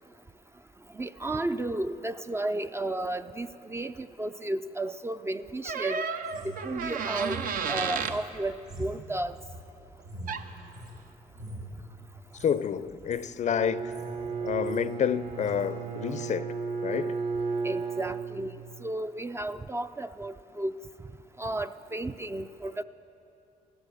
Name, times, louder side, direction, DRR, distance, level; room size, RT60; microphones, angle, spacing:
voice 1, 0.9-6.1 6.4-7.4 7.7-9.4 17.6-18.5 18.8-20.8 21.4-22.8, right 1 dB, 15° right, 0.4 m, -33 dB
sound 1, 5.6-8.2 10.3-10.5, right 6 dB, 65° right, 0.7 m, -32 dB
sound 2, 6.2-11.0 11.3-11.7 12.2-12.5 12.9-13.3 13.6-14.2 14.4-14.8 15.4-15.6, right 1 dB, 90° right, 4.1 m, -44 dB
voice 2, 12.4-13.9 14.4-16.5 16.8-17.2, left 8 dB, 50° left, 0.5 m, -29 dB
Bowed string instrument, 13.4-18.9, right 5 dB, 35° right, 0.8 m, -34 dB
15.0 x 13.0 x 7.0 m
cardioid pair, 75°, 16 cm